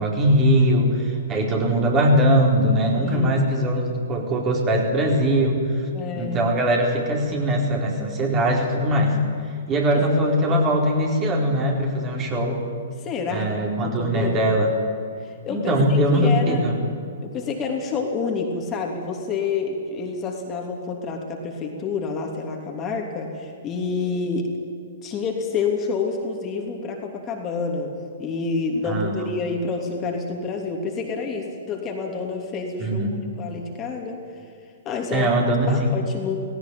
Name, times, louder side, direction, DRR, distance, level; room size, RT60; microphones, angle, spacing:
voice 1, 0.0-5.8 6.1-9.2 9.7-12.6 13.3-14.7 15.5-16.8 28.8-29.2 32.8-33.1 35.1-36.0, equal, 25° right, 0 dB, 4.3 m, -21 dB
voice 2, 3.0-3.4 5.9-6.5 9.9-10.0 10.5-10.6 13.0-14.6 15.2-16.6 17.2-24.5 25.0-27.9 28.2-33.1 33.4-34.2 34.8-35.3 35.7-36.4, left 4 dB, 25° left, 1 dB, 3.0 m, -28 dB
18.0 x 17.5 x 9.4 m, 2.5 s
figure-of-eight pair, 115°, 0 cm